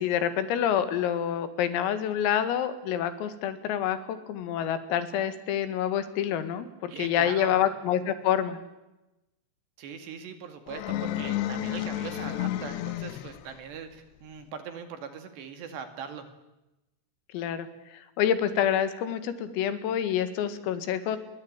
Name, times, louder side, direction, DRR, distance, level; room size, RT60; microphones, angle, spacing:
voice 1, 0.0-8.6 17.3-17.7 18.2-21.2, left 9 dB, 90° left, 11 dB, 4.7 m, -27 dB
voice 2, 6.9-7.5 9.8-16.3, right 7 dB, 60° right, 8 dB, 4.2 m, -40 dB
sound 1, 10.7-13.6, left 13 dB, 70° left, 2.7 m, -31 dB
29.0 x 23.0 x 8.9 m, 0.96 s
omnidirectional pair, 5.9 m